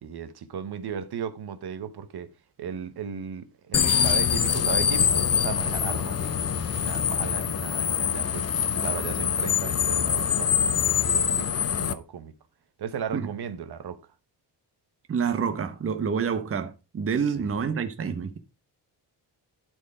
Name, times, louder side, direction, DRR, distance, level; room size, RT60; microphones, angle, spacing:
voice 1, 0.0-2.3 2.6-12.3 12.8-14.0 17.3-17.6, right 7 dB, 65° right, 1.2 m, -36 dB
sound 1, 3.7-11.9, left 8 dB, 40° left, 0.7 m, -24 dB
voice 2, 15.1-18.4, right 6 dB, 35° right, 0.9 m, -28 dB
12.0 x 4.6 x 4.8 m
wide cardioid pair, 175°, 41 cm